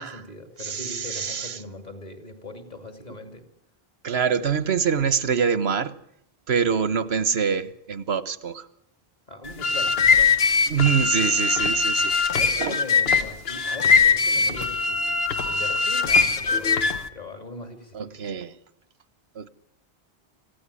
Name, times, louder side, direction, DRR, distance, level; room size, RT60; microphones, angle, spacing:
voice 1, 0.0-3.4 9.3-10.5 12.0-15.2 15.4-16.8 17.1-18.3, left 2 dB, 40° left, 7 dB, 2.8 m, -40 dB
voice 2, 0.6-1.5 4.0-5.9 6.5-8.6 10.7-12.1 12.6-12.8 17.9-18.5 19.4-19.5, right 7 dB, 90° right, 15 dB, 1.4 m, -25 dB
sound 1, 9.4-17.1, left 4 dB, 75° left, 1.4 m, -21 dB
26.0 x 16.5 x 9.9 m, 0.75 s
omnidirectional pair, 1.0 m